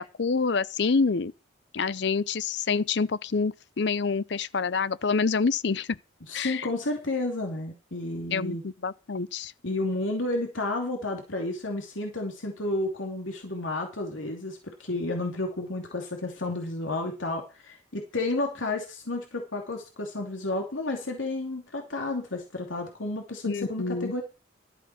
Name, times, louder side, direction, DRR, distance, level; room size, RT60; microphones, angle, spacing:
voice 1, 0.0-1.3 1.7-6.0 6.3-6.7 8.3-9.5 23.4-24.1, left 4 dB, 60° left, 0.6 m, -27 dB
voice 2, 6.3-8.6 9.6-24.2, left 2 dB, 80° left, 2.8 m, -31 dB
12.5 x 7.7 x 6.1 m
head